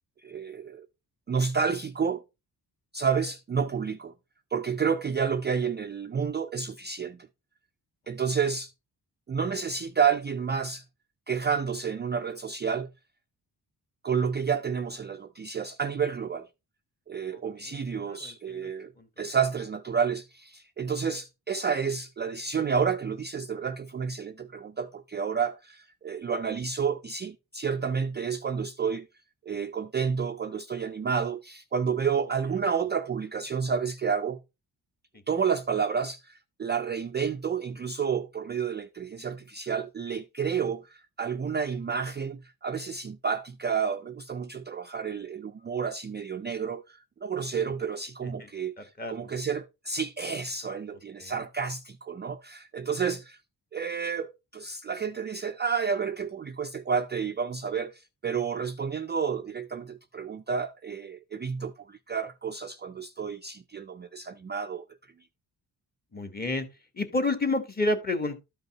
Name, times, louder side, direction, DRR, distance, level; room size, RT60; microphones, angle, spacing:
voice 1, 0.2-0.9 1.3-2.2 2.9-4.1 4.5-7.3 8.1-8.7 9.3-10.8 11.3-12.9 14.0-16.5 17.1-18.9 19.2-29.1 29.5-34.4 35.3-53.4 53.7-64.9, right 6 dB, 30° right, 0.3 m, -30 dB
voice 2, 18.1-18.7 19.0-19.1 48.4-48.5 48.8-49.3 51.2-51.4 66.1-66.7 66.9-68.4, left 2 dB, 25° left, 1.3 m, -30 dB
12.5 x 5.3 x 2.9 m
wide cardioid pair, 130°, 39 cm